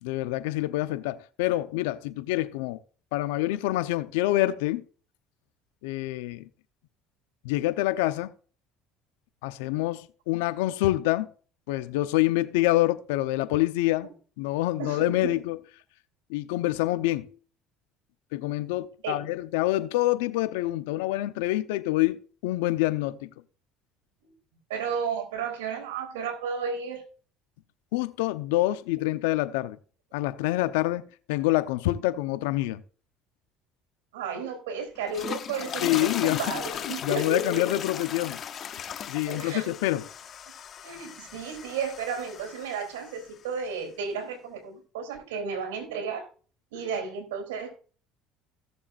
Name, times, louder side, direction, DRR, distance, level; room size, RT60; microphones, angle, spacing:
voice 1, 0.0-2.8 3.1-4.8 5.8-6.5 7.4-8.3 9.4-11.3 11.7-14.1 14.4-15.6 16.3-17.4 18.3-23.3 27.9-29.8 30.1-32.8 35.8-36.4 36.8-38.4 39.1-40.1, left 17 dB, 85° left, 0.8 m, -26 dB
voice 2, 14.8-15.3 19.0-19.2 24.2-24.3 24.7-27.0 34.1-37.7 39.3-39.9 40.8-46.3 46.7-47.7, right 5 dB, 90° right, 3.4 m, -33 dB
sound 1, 35.0-43.3, left 8 dB, 45° left, 0.9 m, -37 dB
16.5 x 7.1 x 2.6 m
supercardioid pair, 85°, 0 cm